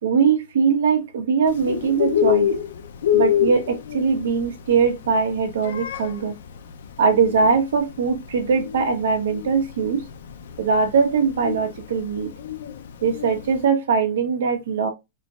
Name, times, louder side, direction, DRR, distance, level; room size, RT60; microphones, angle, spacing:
voice 1, 0.0-2.5 3.1-6.3 7.0-10.0 10.6-12.3 13.0-14.9, right 5 dB, 85° right, 1.2 m, -21 dB
Bird, 1.5-13.6, left 9 dB, 80° left, 0.5 m, -27 dB
4.4 x 4.1 x 2.4 m
supercardioid pair, 175°, 0 cm